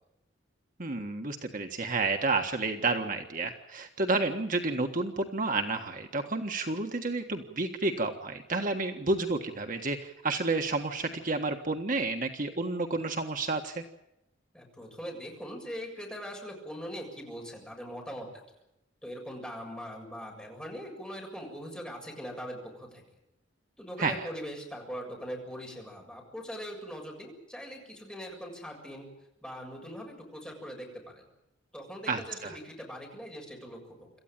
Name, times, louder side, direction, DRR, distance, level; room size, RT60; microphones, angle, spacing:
voice 1, 0.8-13.8 24.0-24.2 32.1-32.6, right 3 dB, 45° right, 5 dB, 1.5 m, -30 dB
voice 2, 14.5-18.3 19.0-23.0 23.8-29.1 29.4-31.3 31.7-34.1, equal, 5° left, 0 dB, 7.3 m, -41 dB
27.0 x 14.0 x 9.0 m, 0.86 s
head